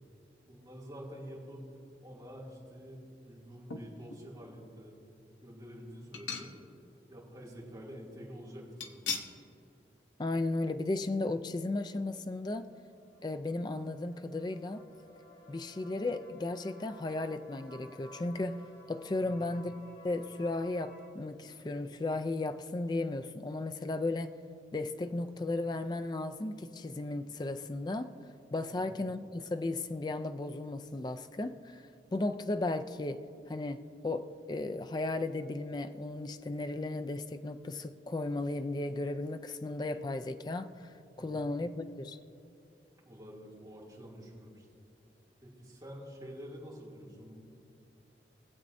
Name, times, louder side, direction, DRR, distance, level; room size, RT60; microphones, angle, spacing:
voice 1, 0.5-1.7 2.0-3.0 3.2-4.9 5.4-6.5 7.1-9.0 19.2-19.5 28.7-28.9 41.2-41.5 43.1-44.7 45.4-47.4, equal, 20° right, 2.5 m, -48 dB
sound 1, 3.7-4.3 4.8-4.9 6.1-6.9 7.2-7.3 8.8-9.4 9.8-10.0 10.3-10.4, left 5 dB, 90° left, 0.9 m, -40 dB
voice 2, 10.2-12.7 13.2-14.8 15.5-18.6 18.9-19.7 20.0-24.3 24.7-28.1 28.5-42.2, left 2 dB, 25° left, 0.3 m, -35 dB
sound 2, 11.9-21.1, left 1 dB, 60° left, 1.7 m, -56 dB
23.5 x 7.8 x 2.6 m
head